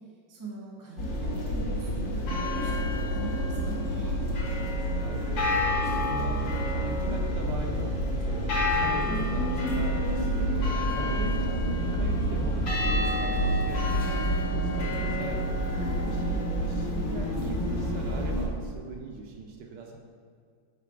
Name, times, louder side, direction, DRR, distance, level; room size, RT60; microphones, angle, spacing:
voice 1, 0.3-4.2 10.7-11.2 15.7-16.0, right 2 dB, 15° right, -2 dB, 0.6 m, -41 dB
sound 1, 1.0-18.5, equal, 75° left, 1.9 m, -28 dB
voice 2, 4.9-5.3 5.7-8.0 8.3-10.3 10.9-15.4 16.0-20.0, right 4 dB, 70° right, 2 dB, 1.2 m, -40 dB
5.9 x 3.9 x 4.6 m, 2.1 s
omnidirectional pair, 2.1 m